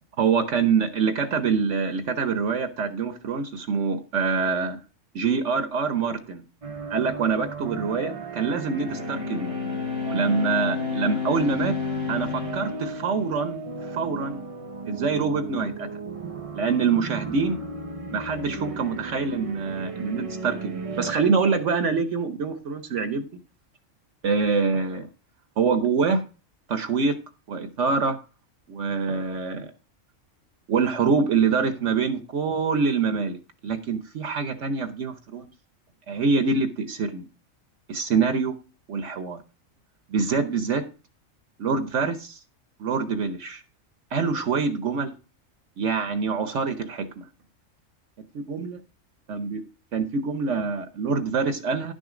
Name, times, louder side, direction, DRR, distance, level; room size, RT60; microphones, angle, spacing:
voice 1, 0.2-4.8 5.1-6.4 6.9-9.5 10.0-11.8 12.1-13.6 13.9-14.4 14.9-15.9 16.5-17.6 18.1-23.3 24.2-25.1 25.6-26.2 26.7-27.1 27.5-28.2 28.7-29.7 30.7-33.4 33.6-35.5 36.1-37.3 37.9-38.6 38.9-39.4 40.1-40.8 41.6-42.4 42.8-43.6 44.1-45.1 45.8-47.2 48.5-48.8 49.3-49.6 49.9-51.9, right 5 dB, 65° right, 10 dB, 1.2 m, -25 dB
sound 1, 6.6-21.2, right 3 dB, 35° right, 0.7 m, -36 dB
Bowed string instrument, 8.5-13.9, left 8 dB, 60° left, 1.8 m, -32 dB
11.5 x 6.4 x 4.9 m, 0.34 s
omnidirectional pair, 1.4 m